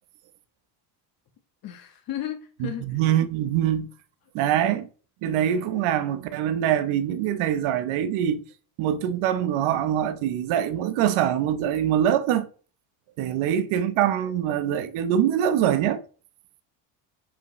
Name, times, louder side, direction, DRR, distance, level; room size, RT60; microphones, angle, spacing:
voice 1, 1.6-3.0 4.4-4.6, left 11 dB, 45° left, 1.4 m, -35 dB
voice 2, 2.6-3.9 4.3-4.9 5.2-8.4 8.8-12.5 13.2-16.0, right 10 dB, 75° right, 1.0 m, -24 dB
8.5 x 5.1 x 3.1 m
cardioid pair, 160°, 49 cm